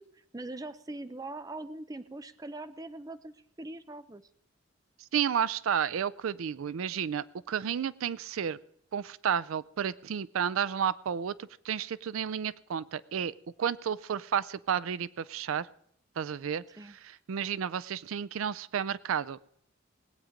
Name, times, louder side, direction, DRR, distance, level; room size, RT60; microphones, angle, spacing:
voice 1, 0.0-4.2 16.7-17.0, right 2 dB, 20° right, 12 dB, 0.5 m, -42 dB
voice 2, 5.1-8.6 8.9-15.7 16.2-16.6 17.0-19.6, right 8 dB, 85° right, 19 dB, 0.4 m, -32 dB
19.0 x 8.7 x 5.1 m, 0.69 s
head